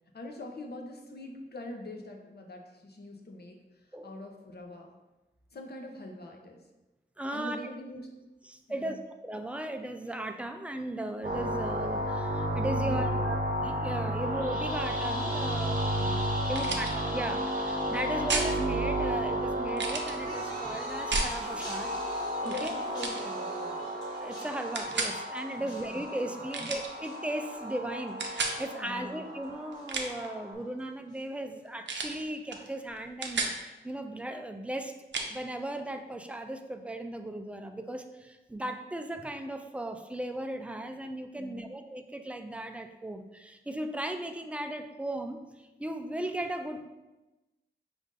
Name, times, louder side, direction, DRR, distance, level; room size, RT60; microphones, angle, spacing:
voice 1, 0.1-4.9 5.5-6.6 7.3-8.1 8.7-9.0 12.7-13.3 15.9-16.8 22.4-23.9 25.6-25.8 28.8-29.1 41.4-41.7, left 1 dB, 55° left, 2 dB, 0.8 m, -44 dB
voice 2, 7.2-7.6 8.4-21.9 22.4-22.7 24.2-34.9 35.3-46.9, right 1 dB, 5° right, 6 dB, 0.4 m, -37 dB
sound 1, 11.2-30.5, equal, 45° right, 0.9 m, -33 dB
sound 2, 16.5-16.9 18.3-18.5 19.7-20.1 21.1-21.3 22.5-22.7 23.0-23.2 24.7-25.1 26.5-26.9 28.2-28.6 29.7-30.3 31.9-32.2 32.5-32.7 33.0-33.6 35.1-35.3, right 3 dB, 70° right, 0.6 m, -32 dB
sound 3, 20.1-29.4 29.7-30.3 31.1-31.2, left 1 dB, 20° left, 1.5 m, -47 dB
5.1 x 2.6 x 3.7 m, 1.1 s
wide cardioid pair, 65°, 19 cm